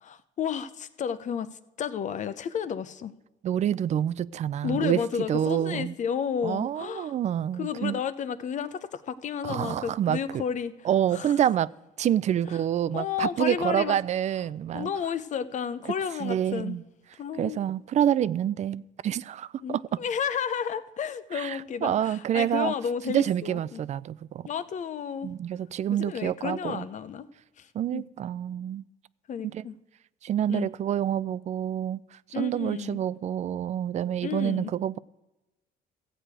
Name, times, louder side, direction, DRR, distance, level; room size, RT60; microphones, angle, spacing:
voice 1, 0.0-1.5 1.8-3.1 4.6-7.1 7.6-10.7 11.1-11.3 12.4-12.6 12.9-14.0 14.7-16.8 17.2-17.6 19.6-23.8 24.4-25.3 25.9-27.3 27.6-27.7 27.9-28.1 29.3-29.7 30.5-30.7 32.3-33.0 34.2-34.7, left 7 dB, 45° left, 0.7 m, -32 dB
voice 2, 3.4-5.0 5.3-5.9 6.4-8.0 9.4-10.4 10.8-11.7 12.0-14.9 16.2-16.8 17.4-20.0 21.3-22.7 23.1-24.5 25.2-26.9 27.7-28.8 29.5-29.7 30.2-35.0, right 10 dB, 45° right, 0.4 m, -27 dB
14.5 x 4.9 x 9.0 m
cardioid pair, 110°, 17 cm